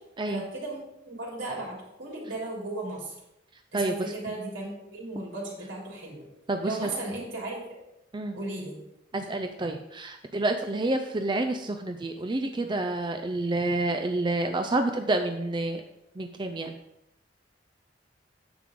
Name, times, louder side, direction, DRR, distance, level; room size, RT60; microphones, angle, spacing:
voice 1, 0.3-3.1 3.7-6.2 6.6-7.8 8.3-8.7, right 2 dB, 80° right, -4 dB, 3.7 m, -36 dB
voice 2, 3.7-4.1 6.5-6.9 8.1-8.4 9.1-15.8 16.2-16.8, right 2 dB, 25° right, 6 dB, 0.5 m, -28 dB
9.5 x 7.6 x 3.7 m, 0.85 s
head